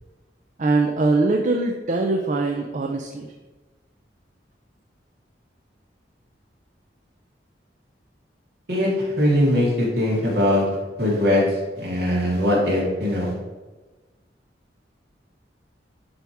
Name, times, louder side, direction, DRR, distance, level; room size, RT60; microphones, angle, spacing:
voice 1, 0.6-3.3, right 3 dB, 45° right, 3 dB, 0.5 m, -22 dB
voice 2, 8.7-10.6 11.0-11.4 11.8-13.3, left 1 dB, 60° right, -4 dB, 2.6 m, -21 dB
10.5 x 3.5 x 4.6 m, 1.2 s
head